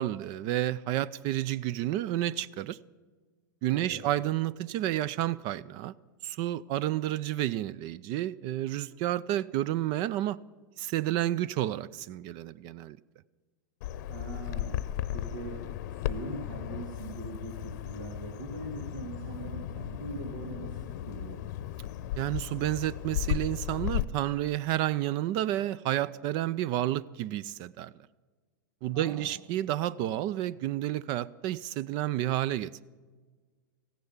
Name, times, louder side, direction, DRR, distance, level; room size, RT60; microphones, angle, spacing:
voice 1, 0.0-2.8 3.6-5.9 6.2-10.4 10.8-13.0 22.2-27.9 28.8-32.8, right 13 dB, 45° right, 0.4 m, -30 dB
voice 2, 3.7-4.0 14.0-14.8 15.1-15.6 15.9-21.4 28.9-29.3, right 2 dB, 80° right, 2.7 m, -41 dB
Bird vocalization bird call bird song, 13.8-24.0, left 12 dB, 65° left, 0.7 m, -35 dB
15.0 x 10.0 x 7.2 m
hypercardioid pair, 125°, 11 cm